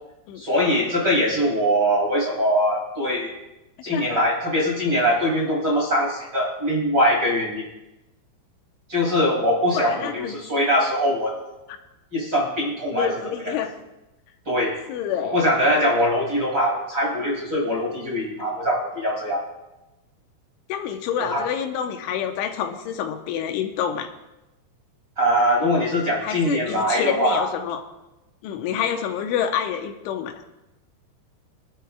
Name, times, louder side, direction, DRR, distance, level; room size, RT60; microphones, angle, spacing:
voice 1, 0.4-3.3 3.8-7.7 8.9-11.4 12.1-13.1 13.4-13.5 14.5-14.8 15.3-19.4 21.2-21.4 25.2-27.4, equal, 30° right, -4 dB, 2.2 m, -22 dB
voice 2, 3.9-4.2 9.7-10.4 12.9-13.8 14.9-15.4 20.7-24.1 26.2-27.8 28.4-30.3, left 8 dB, 90° left, 5 dB, 3.3 m, -27 dB
24.5 x 12.0 x 2.3 m, 0.97 s
omnidirectional pair, 5.3 m